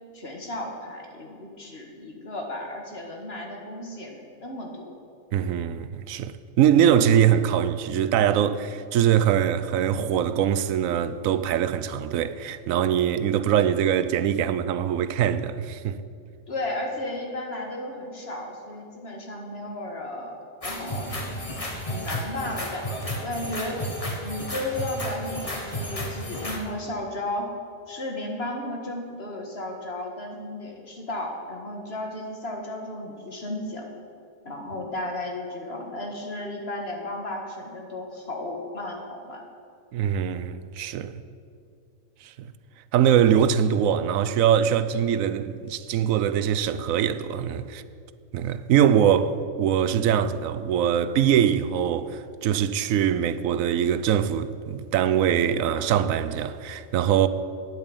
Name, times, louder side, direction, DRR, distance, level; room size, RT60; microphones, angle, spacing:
voice 1, 0.1-4.9 16.5-20.4 20.6-21.5 21.9-23.8 24.2-27.5 27.9-33.9 34.5-39.4, left 1 dB, 50° left, 2.0 m, -34 dB
voice 2, 5.3-16.0 39.9-41.2 42.2-42.5 42.9-47.8 48.3-57.3, right 9 dB, 85° right, 1.0 m, -23 dB
sound 1, 20.6-26.6, equal, 25° left, 1.5 m, -32 dB
9.9 x 8.8 x 8.9 m
omnidirectional pair, 1.4 m